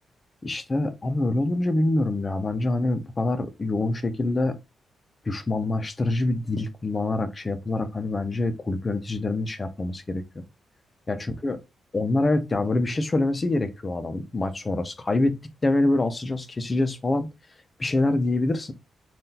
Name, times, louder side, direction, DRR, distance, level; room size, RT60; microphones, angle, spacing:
voice 1, 0.4-4.6 5.3-10.4 11.1-11.6 11.9-17.3 17.8-18.7, left 2 dB, 25° left, 0.5 m, -25 dB
3.6 x 2.3 x 2.7 m
cardioid pair, 115°, 0 cm